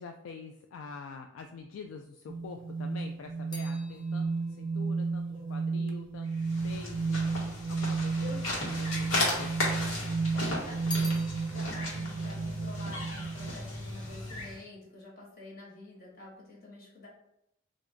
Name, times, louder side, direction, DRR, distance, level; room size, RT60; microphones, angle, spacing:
voice 1, 0.0-6.4 6.6-7.3 7.7-8.2 8.5-9.7, left 5 dB, 70° left, 4 dB, 0.3 m, -46 dB
sound 1, 2.3-13.5, right 4 dB, 40° right, 0.4 m, -33 dB
sound 2, 2.5-7.0 7.7-8.6 8.8-10.0 10.3-13.8 14.1-14.6, left 2 dB, 20° left, 0.7 m, -48 dB
sound 3, 6.3-14.6, left 1 dB, 90° left, 1.3 m, -35 dB
voice 2, 8.2-8.5 10.3-11.2 11.5-17.1, left 2 dB, 50° left, -4 dB, 1.4 m, -47 dB
3.5 x 2.5 x 3.7 m, 0.79 s
head